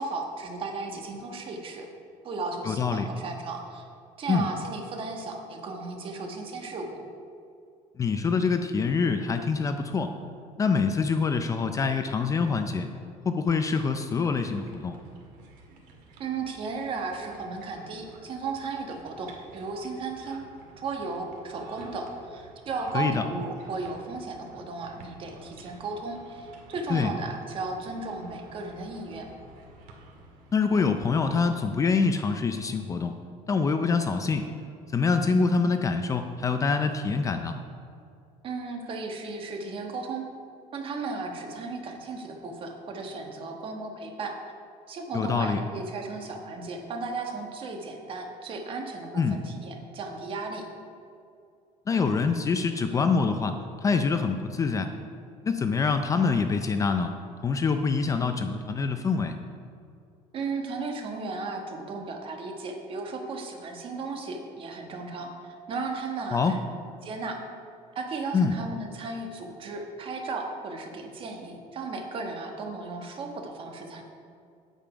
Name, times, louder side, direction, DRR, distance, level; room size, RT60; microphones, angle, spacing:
voice 1, 0.0-1.9 2.2-3.8 4.2-7.0 16.2-20.4 20.8-29.3 38.4-40.2 40.7-44.3 44.9-50.7 60.3-66.6 67.0-67.4 67.9-74.0, right 3 dB, 40° right, 3 dB, 1.3 m, -35 dB
voice 2, 2.6-3.1 4.3-4.5 8.0-10.1 10.6-12.9 13.3-15.0 22.9-23.2 26.9-27.1 30.5-33.1 33.5-34.4 34.9-37.5 45.1-45.6 49.1-49.4 51.9-53.6 53.8-54.9 55.4-57.1 57.4-59.4 66.3-66.5 68.3-68.6, left 5 dB, 25° left, 7 dB, 0.4 m, -25 dB
sound 1, 14.4-31.6, right 2 dB, 80° right, 1.9 m, -52 dB
9.0 x 8.7 x 5.0 m, 2.4 s
cardioid pair, 145°, 14 cm